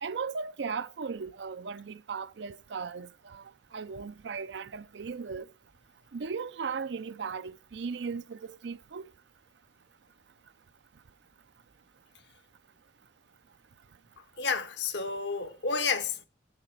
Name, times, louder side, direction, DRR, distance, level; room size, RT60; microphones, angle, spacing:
voice 1, 0.0-3.4 3.7-5.5 6.1-9.1, right 5 dB, 65° right, 0.5 m, -37 dB
voice 2, 14.4-16.2, left 5 dB, 65° left, 1.0 m, -30 dB
15.5 x 5.9 x 4.8 m
head